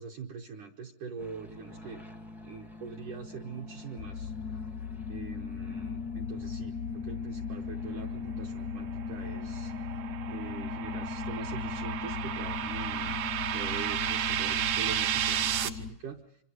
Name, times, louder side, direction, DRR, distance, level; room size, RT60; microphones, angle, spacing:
voice 1, 0.0-2.0 2.4-4.3 5.1-9.7 10.3-13.2 13.5-16.4, right 5 dB, 70° right, 1 dB, 2.0 m, -43 dB
sound 1, 1.2-11.7, left 3 dB, 5° right, 0.3 m, -49 dB
sound 2, 4.0-15.9, left 6 dB, 75° left, 1.7 m, -37 dB
sound 3, 8.9-15.7, right 11 dB, 90° right, 1.8 m, -33 dB
26.5 x 23.0 x 5.0 m, 0.78 s
omnidirectional pair, 5.0 m